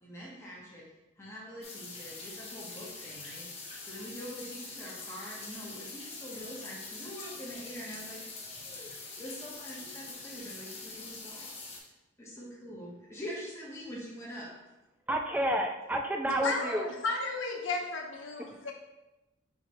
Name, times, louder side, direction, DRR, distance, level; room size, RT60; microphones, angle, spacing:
voice 1, 0.0-0.8 1.2-3.5 3.8-11.6 12.2-14.5, equal, 15° left, -5 dB, 1.1 m, -44 dB
sound 1, 1.6-11.8, left 3 dB, 30° left, 0.8 m, -44 dB
voice 2, 15.1-16.9, right 1 dB, 10° right, 3 dB, 0.3 m, -30 dB
voice 3, 16.4-18.7, left 3 dB, 75° left, 1 dB, 0.8 m, -34 dB
4.7 x 3.8 x 3.0 m, 0.99 s
head